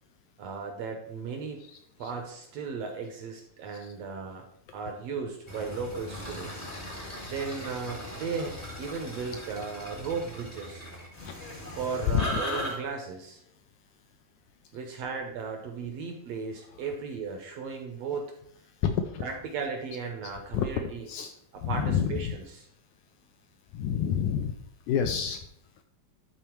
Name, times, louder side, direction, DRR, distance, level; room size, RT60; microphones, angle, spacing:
voice 1, 0.4-1.6 2.0-4.5 4.7-6.5 7.2-8.5 8.8-10.9 11.8-13.4 14.7-18.3 19.2-21.0 21.7-22.4, right 5 dB, 75° right, 3 dB, 1.5 m, -36 dB
voice 2, 1.7-2.1 3.8-3.9 11.2-11.3 12.1-12.4 18.8-19.2 20.5-20.7 21.1-21.3 21.6-22.4 23.7-24.5 24.9-25.4, left 8 dB, 80° left, 6 dB, 1.8 m, -28 dB
sound 1, 5.5-12.7, equal, 40° left, 0.5 m, -38 dB
11.0 x 4.3 x 4.5 m, 0.72 s
omnidirectional pair, 4.1 m